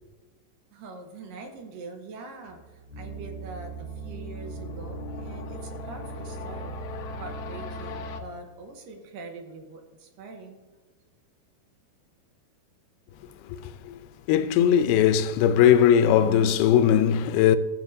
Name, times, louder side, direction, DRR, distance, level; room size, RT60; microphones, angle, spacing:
voice 1, 0.7-6.8 7.2-10.7, right 3 dB, 75° right, 2.5 m, -43 dB
sound 1, 2.5-8.2, right 1 dB, 75° left, 1.8 m, -37 dB
voice 2, 13.4-14.0 14.3-17.6, left 9 dB, 90° left, 2.5 m, -20 dB
15.5 x 7.3 x 2.7 m
omnidirectional pair, 4.3 m